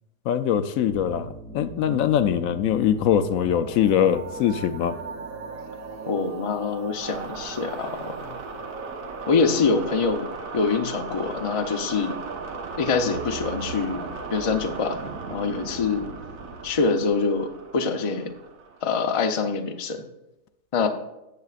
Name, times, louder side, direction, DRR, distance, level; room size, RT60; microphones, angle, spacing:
voice 1, 0.3-5.0, left 9 dB, 75° left, 11 dB, 1.0 m, -22 dB
sound 1, 0.9-19.4, right 4 dB, 75° right, 1.5 m, -37 dB
voice 2, 6.1-8.4 9.3-10.3 10.5-12.1 12.8-15.0 15.3-16.1 16.6-18.3 18.8-20.0 20.7-20.9, left 4 dB, 35° left, 5 dB, 0.6 m, -25 dB
17.0 x 6.8 x 2.5 m, 0.92 s
omnidirectional pair, 1.5 m